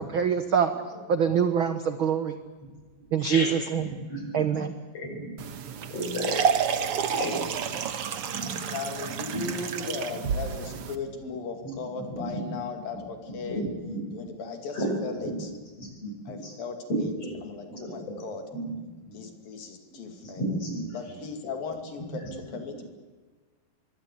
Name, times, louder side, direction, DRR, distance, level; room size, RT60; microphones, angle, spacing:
voice 1, 0.1-0.7 1.1-2.4 3.1-3.9 4.3-4.7, right 7 dB, 75° right, 9 dB, 1.2 m, -24 dB
voice 2, 3.9-4.6 4.9-5.5 5.9-6.4 7.1-7.4 8.3-8.5 9.3-9.5 12.1-12.4 13.4-14.0 14.7-15.0 15.2-15.4 15.8-16.1 16.4-16.5 17.2-17.4 17.7-18.2 18.5-18.7 19.0-19.1 20.2-20.9, equal, 45° left, 2 dB, 8.1 m, -33 dB
sound 1, 5.4-11.0, right 7 dB, 55° right, 1.8 m, -30 dB
voice 3, 8.3-13.7 14.1-15.5 16.3-17.1 17.4-18.4 19.1-20.5 20.9-22.9, left 4 dB, 75° left, 5 dB, 4.2 m, -37 dB
25.0 x 23.5 x 8.4 m, 1.4 s
omnidirectional pair, 4.1 m